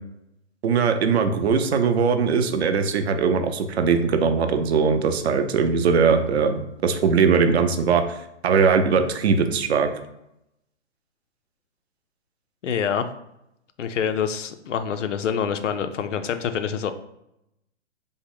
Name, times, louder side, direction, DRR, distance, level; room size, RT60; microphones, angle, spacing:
voice 1, 0.6-8.0 8.4-9.9, right 5 dB, 60° right, 7 dB, 0.5 m, -20 dB
voice 2, 12.6-13.1 13.8-16.9, left 7 dB, 85° left, 9 dB, 0.5 m, -26 dB
3.5 x 2.1 x 3.7 m, 0.83 s
hypercardioid pair, 140°, 36 cm